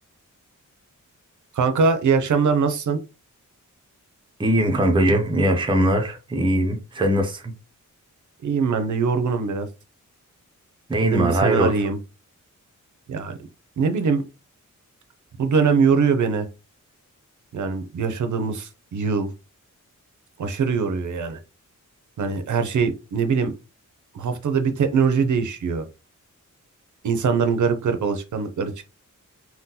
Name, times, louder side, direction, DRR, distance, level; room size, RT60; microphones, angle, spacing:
voice 1, 1.5-3.0 8.4-9.7 11.0-12.0 13.1-13.4 13.8-14.2 15.4-16.5 17.5-19.3 20.4-21.4 22.2-23.5 24.1-25.9 27.0-28.8, right 5 dB, 65° right, 0.5 m, -22 dB
voice 2, 4.4-7.5 10.9-11.7, right 1 dB, 15° right, 0.5 m, -21 dB
3.7 x 2.2 x 2.7 m
wide cardioid pair, 165°, 32 cm